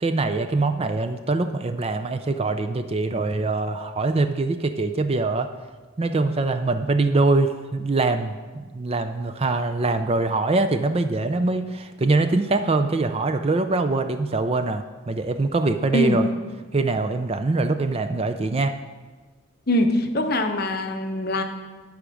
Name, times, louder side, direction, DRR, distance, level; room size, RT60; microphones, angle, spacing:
voice 1, 0.0-5.5 6.0-16.2 16.7-18.7, right 3 dB, 30° right, 9 dB, 0.4 m, -23 dB
voice 2, 19.7-21.4, left 1 dB, 45° left, 6 dB, 0.8 m, -22 dB
10.0 x 5.0 x 6.3 m, 1.3 s
head